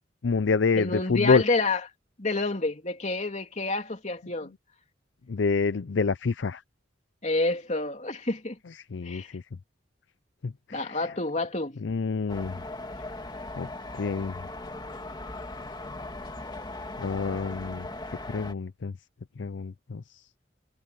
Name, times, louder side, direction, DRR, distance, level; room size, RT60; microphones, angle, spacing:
voice 1, 0.2-1.4 5.3-6.6 8.9-9.4 10.4-11.1 11.8-12.6 13.6-13.7 13.9-14.3 17.0-17.9 18.3-18.9 19.4-20.0, left 4 dB, 70° left, 0.5 m, -27 dB
voice 2, 0.7-1.8 2.2-4.5 7.2-8.6 9.0-9.3 10.7-11.8, left 3 dB, 40° left, 3.2 m, -28 dB
sound 1, 12.3-18.5, left 2 dB, 20° left, 1.7 m, -39 dB
head